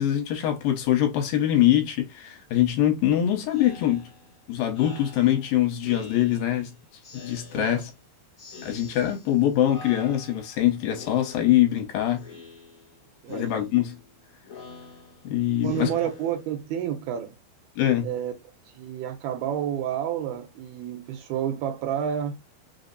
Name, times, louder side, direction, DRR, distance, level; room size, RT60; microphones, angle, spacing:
voice 1, 0.0-4.1 4.5-6.7 7.1-7.9 8.6-12.3 13.3-14.0 15.2-15.9 17.8-18.1, left 12 dB, 75° left, 2.5 m, -23 dB
Speech synthesizer, 3.5-6.7 7.0-8.0 8.4-9.4 9.7-10.6 10.9-11.8 12.2-13.0 13.3-16.8, left 4 dB, 45° left, 1.0 m, -46 dB
voice 2, 7.5-7.8 13.2-13.5 15.6-17.3 18.0-18.3 18.7-22.3, right 9 dB, 80° right, 2.7 m, -30 dB
6.0 x 2.0 x 4.0 m
omnidirectional pair, 4.5 m